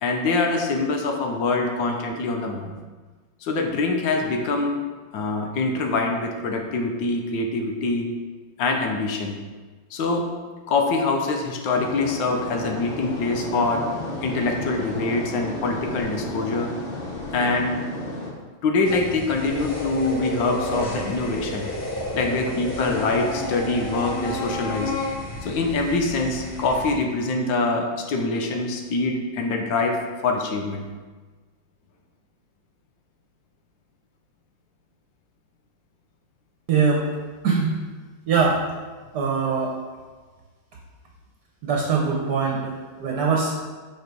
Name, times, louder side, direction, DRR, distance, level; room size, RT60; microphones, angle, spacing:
voice 1, 0.0-2.7 3.4-4.8 5.1-8.1 8.6-9.4 9.9-10.3 10.7-13.9 14.2-16.7 17.3-17.8 18.6-21.7 22.1-24.9 25.4-30.8, left 3 dB, 75° left, 3 dB, 1.6 m, -24 dB
sound 1, 11.7-18.3, left 1 dB, 40° left, 0.9 m, -33 dB
sound 2, 18.8-26.9, left 2 dB, 60° left, 2.1 m, -33 dB
Frog, 19.5-24.6, equal, 20° left, 0.4 m, -32 dB
voice 2, 36.7-37.1 37.4-37.7 38.3-38.6 39.1-39.8 41.6-43.5, right 5 dB, 60° right, 0 dB, 1.3 m, -22 dB
7.5 x 4.8 x 4.6 m, 1.4 s
omnidirectional pair, 2.1 m